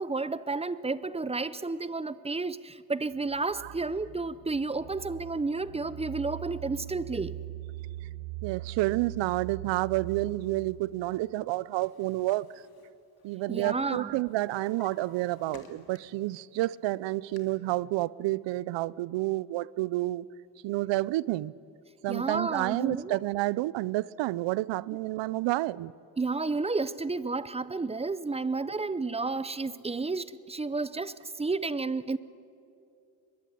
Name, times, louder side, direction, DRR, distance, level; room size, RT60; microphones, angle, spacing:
voice 1, 0.0-7.4 13.5-14.2 22.1-23.2 26.2-32.2, right 3 dB, 15° right, 0.6 m, -31 dB
sound 1, 3.1-10.9, right 15 dB, 55° right, 1.4 m, -41 dB
voice 2, 8.4-12.5 13.2-20.3 20.6-21.5 22.0-25.9, right 17 dB, 80° right, 0.7 m, -29 dB
Drawer open or close, 11.2-13.6 13.9-16.3 16.7-17.4, left 5 dB, 55° left, 2.8 m, -55 dB
23.0 x 21.5 x 8.6 m
cardioid pair, 110°, 43 cm